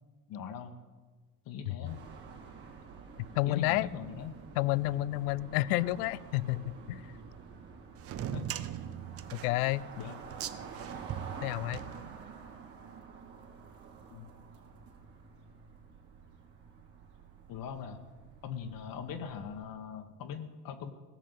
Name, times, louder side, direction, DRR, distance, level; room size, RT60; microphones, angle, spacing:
voice 1, 0.3-0.7 1.4-2.0 3.5-4.4 8.3-8.4 10.0-10.1 14.1-14.3 17.5-18.0 18.4-20.9, left 7 dB, 50° left, 6 dB, 1.2 m, -40 dB
sound 1, 1.8-19.7, right 6 dB, 55° right, 2.8 m, -49 dB
voice 2, 3.4-3.9 4.6-7.0 9.3-9.9 11.4-11.8, left 17 dB, 80° left, 21 dB, 0.6 m, -30 dB
sound 2, 8.0-12.6, right 10 dB, 30° right, 0.6 m, -40 dB
16.5 x 6.5 x 8.1 m, 1.4 s
supercardioid pair, 110°, 45 cm